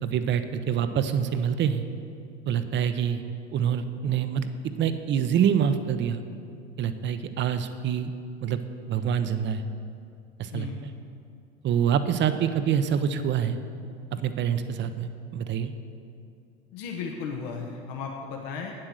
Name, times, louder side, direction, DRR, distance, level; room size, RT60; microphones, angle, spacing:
voice 1, 0.0-1.8 2.5-3.2 3.5-4.4 4.8-6.2 6.8-8.1 8.4-8.6 8.9-9.6 10.4-10.7 11.6-13.6 14.1-15.7, right 8 dB, 35° right, 10 dB, 0.7 m, -26 dB
voice 2, 16.7-18.7, left 5 dB, 65° left, 1 dB, 1.1 m, -35 dB
8.9 x 7.6 x 6.4 m, 2.5 s
hypercardioid pair, 80°, 33 cm